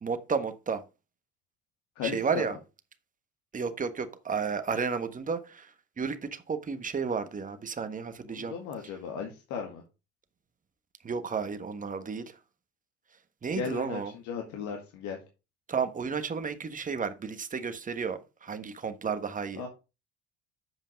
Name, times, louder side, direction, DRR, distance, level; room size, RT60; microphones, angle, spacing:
voice 1, 0.0-0.8 2.0-2.6 3.5-5.7 6.0-8.5 11.0-12.3 13.4-14.1 15.7-19.6, right 5 dB, 25° right, 1.3 m, -32 dB
voice 2, 2.0-2.6 8.3-9.8 13.5-15.2 19.5-19.7, left 6 dB, 80° left, 2.0 m, -36 dB
7.9 x 5.3 x 5.1 m
supercardioid pair, 95°, 29 cm